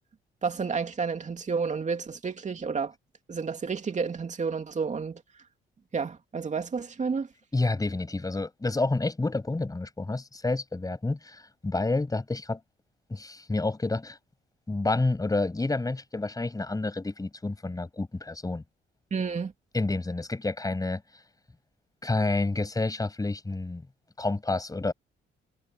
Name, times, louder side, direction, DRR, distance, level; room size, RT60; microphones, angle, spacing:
voice 1, 0.4-2.9 3.3-5.2 5.9-7.3 19.1-19.5, right 5 dB, 35° right, 2.7 m, -30 dB
voice 2, 7.5-12.6 13.1-14.2 14.7-18.6 19.7-21.0 22.0-23.8 24.2-24.9, left 2 dB, 20° left, 6.6 m, -29 dB
cardioid pair, 90°, 20 cm